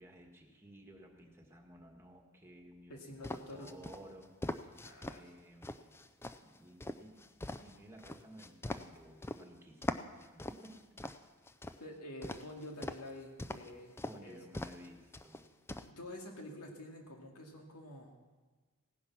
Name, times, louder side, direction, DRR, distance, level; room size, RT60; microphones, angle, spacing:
voice 1, 0.0-4.3 4.6-6.0 6.4-10.8 14.0-15.5, right 1 dB, 10° right, 2 dB, 1.7 m, -56 dB
voice 2, 2.9-3.7 4.8-5.2 11.8-14.4 15.8-18.1, left 1 dB, 90° left, 1 dB, 2.3 m, -48 dB
sound 1, 3.2-5.2 5.6-9.4 9.8-11.8 12.2-13.1 13.4-13.7 14.0-14.2 14.5-14.9 15.1-15.9, left 2 dB, 10° left, 0.4 m, -41 dB
16.5 x 10.0 x 5.9 m, 1.3 s
head